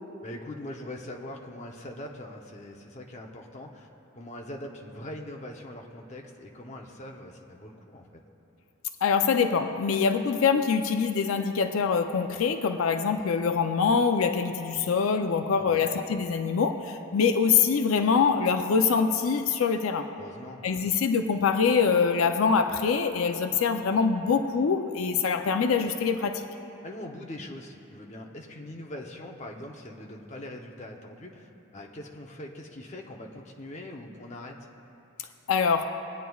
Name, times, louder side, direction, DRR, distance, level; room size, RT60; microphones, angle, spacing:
voice 1, 0.2-3.9 4.1-8.2 15.6-15.9 20.2-20.7 26.8-34.7, left 1 dB, 35° left, 1 dB, 0.7 m, -42 dB
voice 2, 9.0-20.1 20.6-26.5 35.5-35.8, left 5 dB, 80° left, 7 dB, 0.4 m, -24 dB
21.0 x 9.2 x 2.3 m, 2.8 s
head